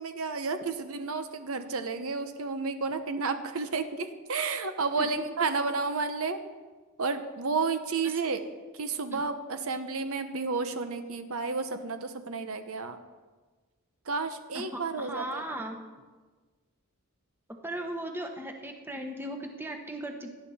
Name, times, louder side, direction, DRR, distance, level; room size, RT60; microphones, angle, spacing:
voice 1, 0.0-6.4 7.0-8.4 8.7-13.0 14.0-15.5, right 4 dB, 70° right, 9 dB, 0.9 m, -31 dB
voice 2, 14.7-15.8 17.6-20.3, right 1 dB, 10° right, 4 dB, 1.1 m, -37 dB
18.0 x 11.5 x 4.3 m, 1.4 s
head